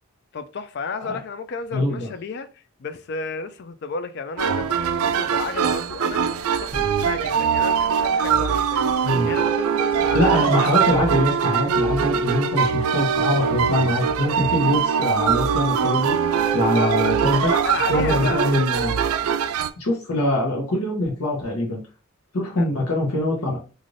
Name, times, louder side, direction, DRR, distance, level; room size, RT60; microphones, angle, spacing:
voice 1, 0.3-6.2 6.6-9.0 9.3-10.5 16.6-17.0 17.4-18.4 22.6-22.7, left 4 dB, 50° left, 0.3 m, -32 dB
voice 2, 1.7-2.1 9.0-9.3 10.0-17.5 17.9-18.9 19.8-21.8 22.3-23.6, left 1 dB, 80° left, 0.9 m, -23 dB
sound 1, 4.4-19.7, right 7 dB, 75° right, 0.3 m, -22 dB
sound 2, 6.7-9.6, equal, 5° left, 0.8 m, -41 dB
3.2 x 2.5 x 2.5 m
head